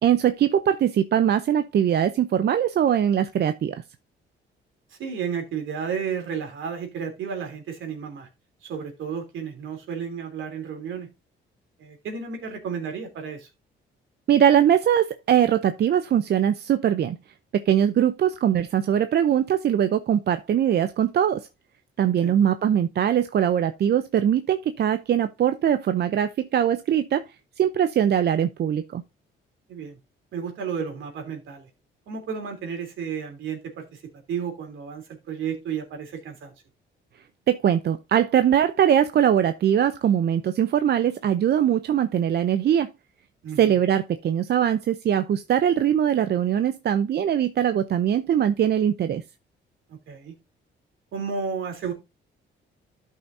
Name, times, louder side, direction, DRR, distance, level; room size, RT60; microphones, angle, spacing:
voice 1, 0.0-3.8 14.3-17.2 17.5-21.5 22.0-27.2 27.6-29.0 37.5-42.9 43.6-49.2, right 9 dB, 55° right, 0.7 m, -21 dB
voice 2, 4.9-8.3 8.6-11.1 11.8-13.5 22.2-22.4 29.7-30.0 30.3-31.7 32.1-34.0 34.3-36.5 43.4-43.7 50.1-50.3 51.1-51.9, right 6 dB, 75° right, 3.2 m, -32 dB
12.5 x 5.6 x 2.7 m
cardioid pair, 90°, 20 cm